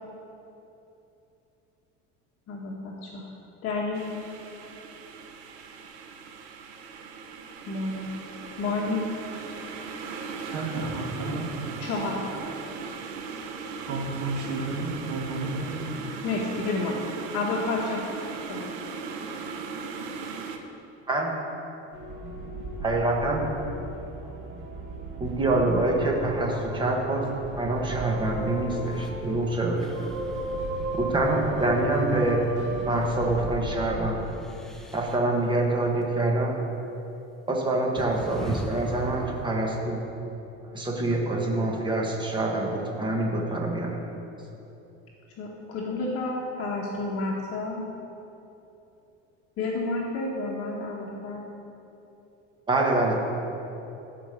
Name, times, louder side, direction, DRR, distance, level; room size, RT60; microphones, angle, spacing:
voice 1, 2.5-3.2 3.6-4.0 7.7-8.1 8.6-9.0 11.8-12.3 16.2-17.0 17.3-18.0 18.5-18.7 45.4-47.8 49.6-51.4, left 3 dB, 50° left, -2 dB, 1.3 m, -30 dB
sound 1, 3.9-20.6, right 5 dB, 85° right, 1.0 m, -38 dB
voice 2, 10.4-11.5 13.8-15.9, right 2 dB, 60° right, -1 dB, 2.2 m, -32 dB
sound 2, 21.9-34.1, right 1 dB, 40° right, 2.0 m, -34 dB
voice 3, 22.8-23.4 24.5-24.6 25.2-27.3 27.6-29.9 30.9-32.4 32.8-34.2 34.9-36.6 37.5-40.0 40.6-43.9 52.7-53.2, right 2 dB, 15° right, 0 dB, 1.3 m, -26 dB
sound 3, 28.8-29.1 29.8-31.8 34.2-35.2 36.8-36.9 38.0-39.5, equal, ahead, 0.5 m, -39 dB
12.0 x 5.2 x 6.7 m, 3.0 s
cardioid pair, 150°, 30 cm